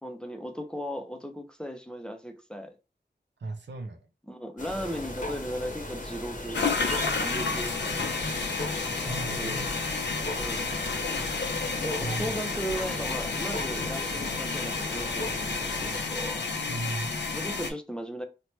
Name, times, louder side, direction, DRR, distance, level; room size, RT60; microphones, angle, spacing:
voice 1, 0.0-2.7 4.3-8.2 9.3-9.7 10.4-10.7 11.8-16.4 17.3-18.3, equal, 5° left, 0.4 m, -37 dB
voice 2, 3.4-4.0 9.1-9.7 12.0-12.3 16.7-17.1, right 2 dB, 90° right, 0.5 m, -35 dB
sound 1, 4.6-16.0, left 1 dB, 45° left, 0.7 m, -37 dB
sound 2, 6.5-17.7, left 4 dB, 85° left, 0.5 m, -31 dB
2.9 x 2.1 x 3.1 m
wide cardioid pair, 60°, 18 cm